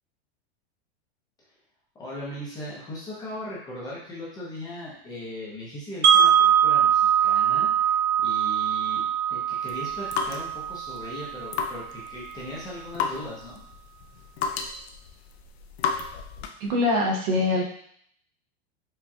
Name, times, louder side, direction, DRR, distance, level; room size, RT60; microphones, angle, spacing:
voice 1, 2.0-7.9 8.2-13.6, left 1 dB, 10° left, -6 dB, 0.6 m, -38 dB
Wind chime, 6.0-12.0, right 9 dB, 90° right, 0.8 m, -22 dB
sound 1, 9.7-16.7, left 6 dB, 75° left, 0.6 m, -34 dB
voice 2, 16.6-17.6, left 2 dB, 40° right, 0 dB, 0.6 m, -23 dB
4.7 x 2.3 x 2.7 m, 0.64 s
supercardioid pair, 165°, 32 cm